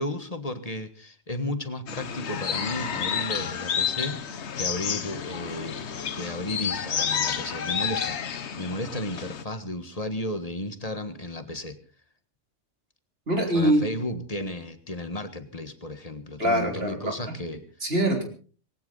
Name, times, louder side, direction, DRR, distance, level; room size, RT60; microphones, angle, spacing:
voice 1, 0.0-11.8 13.5-17.6, left 1 dB, 30° left, 9 dB, 1.6 m, -34 dB
sound 1, 1.9-9.4, left 7 dB, 65° left, 1.2 m, -30 dB
voice 2, 13.3-13.9 16.4-17.3 17.8-18.2, right 1 dB, 50° right, 3 dB, 3.9 m, -24 dB
19.5 x 18.0 x 4.0 m, 0.41 s
omnidirectional pair, 1.3 m